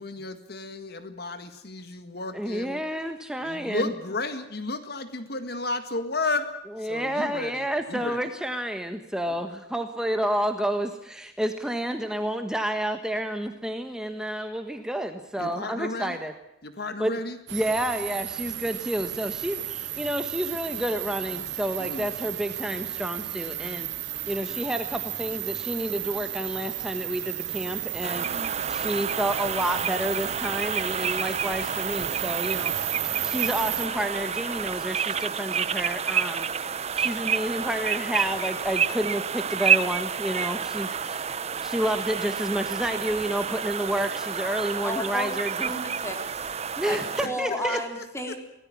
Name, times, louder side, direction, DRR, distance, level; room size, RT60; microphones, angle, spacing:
voice 1, 0.0-2.8 3.4-6.5 6.8-7.6 7.9-8.3 9.3-9.5 15.4-16.2 16.6-17.4 21.8-22.1 28.2-28.5 47.2-47.4 47.7-48.3, left 2 dB, 60° left, 9 dB, 1.9 m, -33 dB
voice 2, 2.3-3.9 6.8-16.3 17.0-17.1 17.5-23.9 24.3-32.7 33.0-41.3 41.6-45.7 46.8-47.8, right 1 dB, 5° right, 6 dB, 1.4 m, -30 dB
sound 1, 17.5-33.9, right 13 dB, 70° right, 0.9 m, -34 dB
sound 2, 28.0-47.3, right 7 dB, 35° right, 0.8 m, -29 dB
voice 3, 44.8-45.3 45.6-46.4 46.8-47.0 47.2-48.4, left 1 dB, 15° left, 4 dB, 4.6 m, -32 dB
24.0 x 18.5 x 8.7 m, 0.86 s
head